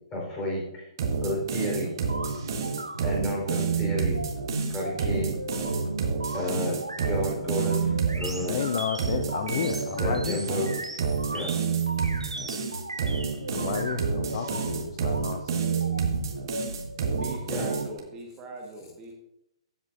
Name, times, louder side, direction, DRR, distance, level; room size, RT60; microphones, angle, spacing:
voice 1, 0.1-0.9 1.2-1.9 3.0-4.2 4.7-5.4 6.3-8.5 9.9-10.8 11.3-11.6 17.4-17.6, left 1 dB, 20° left, -3 dB, 4.0 m, -31 dB
sound 1, 1.0-18.0, right 6 dB, 45° right, 1.4 m, -29 dB
sound 2, 2.0-17.8, right 2 dB, 85° right, 1.1 m, -36 dB
voice 2, 8.3-10.5 13.5-15.9, left 8 dB, 40° left, 7 dB, 0.5 m, -32 dB
voice 3, 17.1-19.1, right 3 dB, 20° right, 0 dB, 1.4 m, -41 dB
14.5 x 8.1 x 2.6 m, 0.85 s
figure-of-eight pair, 125°, 3 cm